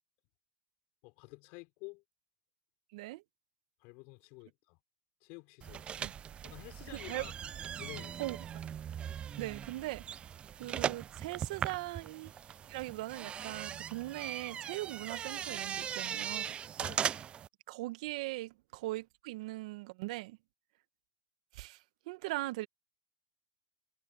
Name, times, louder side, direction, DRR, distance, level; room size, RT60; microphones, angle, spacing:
voice 1, 1.0-2.0 3.8-4.8 5.2-5.9 6.4-7.3 7.8-8.2 16.8-17.1, left 29 dB, 55° left, 5.7 m, -50 dB
voice 2, 2.9-3.2 6.0-6.1 6.9-7.3 8.2-8.4 9.4-10.0 10.6-12.3 12.7-16.6 17.7-20.4 21.5-21.8 22.1-22.7, right 19 dB, 65° right, 1.5 m, -40 dB
sound 1, 5.6-17.5, right 9 dB, 25° right, 0.3 m, -39 dB
hypercardioid pair, 105°, 4 cm